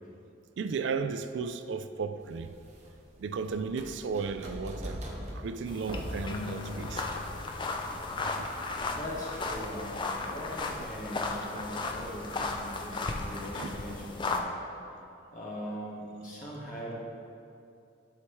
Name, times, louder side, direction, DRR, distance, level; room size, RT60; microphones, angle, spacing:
voice 1, 0.6-2.6 3.2-5.0 5.3-7.1 8.2-8.7 10.6-10.9 11.6-11.7 13.6-13.8, right 5 dB, 65° right, 0.3 m, -35 dB
sound 1, 2.2-8.8, equal, 35° right, 0.8 m, -42 dB
sound 2, 5.7-14.4, left 3 dB, 25° left, 0.4 m, -35 dB
sound 3, 6.3-8.9, left 3 dB, 80° left, 0.5 m, -43 dB
voice 2, 8.9-14.5 15.3-16.9, equal, 40° left, 1.6 m, -41 dB
11.5 x 4.5 x 3.1 m
head